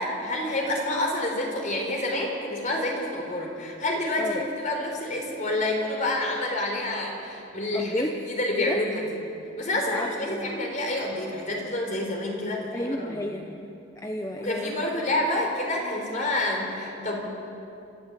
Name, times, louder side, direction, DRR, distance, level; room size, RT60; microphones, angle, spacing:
voice 1, 0.0-9.0 9.6-13.3 14.4-17.2, left 1 dB, 45° left, 1 dB, 4.2 m, -28 dB
voice 2, 7.7-8.1 8.6-8.8 9.9-10.6 12.7-14.9, left 1 dB, 15° left, 3 dB, 0.9 m, -32 dB
27.5 x 13.5 x 7.6 m, 2.7 s
head